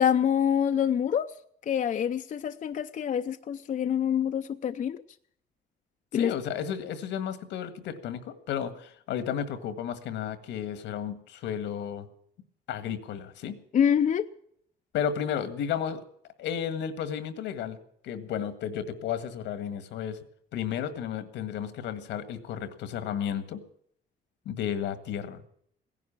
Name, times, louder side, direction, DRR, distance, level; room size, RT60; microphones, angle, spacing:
voice 1, 0.0-1.3 1.7-5.0 6.1-6.3 13.7-14.3, left 8 dB, 45° left, 9 dB, 0.6 m, -26 dB
voice 2, 6.1-12.1 12.7-13.6 14.9-16.0 16.4-20.2 20.5-23.6 24.5-25.4, left 8 dB, 85° left, 12 dB, 1.7 m, -33 dB
17.0 x 11.0 x 7.3 m, 0.68 s
cardioid pair, 105°, 18 cm